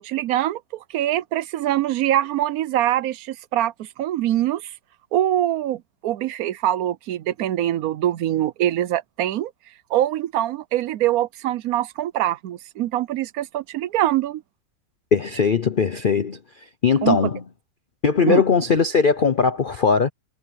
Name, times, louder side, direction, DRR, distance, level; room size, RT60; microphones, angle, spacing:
voice 1, 0.0-4.7 5.1-9.5 9.9-14.4 17.0-17.2 18.3-18.4, right 12 dB, 65° right, 1.0 m, -23 dB
voice 2, 15.1-16.4 16.8-17.4 18.0-20.1, left 5 dB, 50° left, 0.6 m, -19 dB
omnidirectional pair, 1.9 m